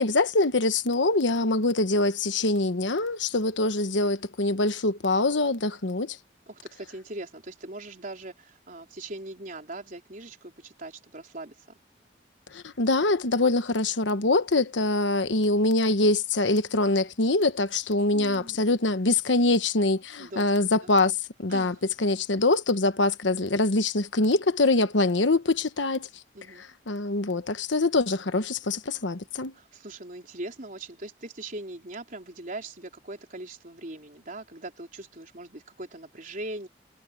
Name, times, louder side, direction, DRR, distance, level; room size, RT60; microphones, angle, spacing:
voice 1, 0.0-6.2 12.5-26.1 26.9-29.5, left 2 dB, 85° left, 1.2 m, -24 dB
voice 2, 6.5-11.8 18.1-18.7 20.2-20.5 20.8-20.9 21.5-21.8 26.3-26.6 29.5-36.7, right 2 dB, 45° right, 4.0 m, -40 dB
head